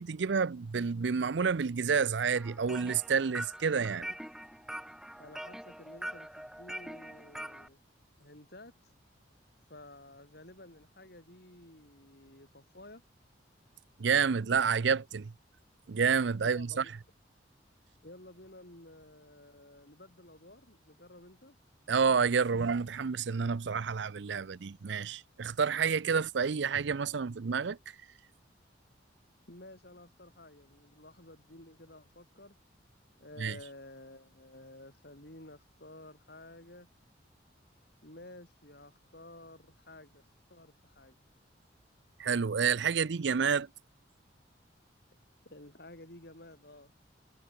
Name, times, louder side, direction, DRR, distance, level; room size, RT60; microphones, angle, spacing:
voice 1, 0.0-4.1 14.0-15.3 15.9-16.8 21.9-27.8 33.4-33.6 42.2-43.7, right 6 dB, 70° right, 0.5 m, -29 dB
sound 1, 2.4-7.7, right 1 dB, 5° right, 0.9 m, -43 dB
voice 2, 5.2-7.8 8.2-8.9 9.7-13.0 16.4-16.9 18.0-21.6 29.5-32.5 33.2-36.9 38.0-40.2 40.5-41.2 45.4-46.9, left 1 dB, 55° left, 6.5 m, -52 dB
head